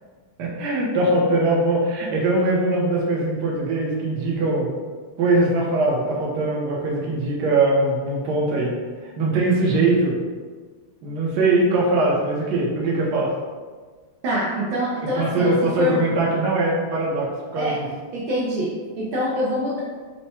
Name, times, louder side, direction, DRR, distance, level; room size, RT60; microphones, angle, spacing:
voice 1, 0.4-4.7 5.2-8.7 9.0-10.2 11.0-13.3 15.1-17.2 17.5-17.9, right 2 dB, 60° right, -4 dB, 1.3 m, -21 dB
voice 2, 14.2-16.0 17.6-17.8 18.1-19.8, equal, 80° right, -5 dB, 1.5 m, -25 dB
4.6 x 2.2 x 4.3 m, 1.5 s
omnidirectional pair, 2.2 m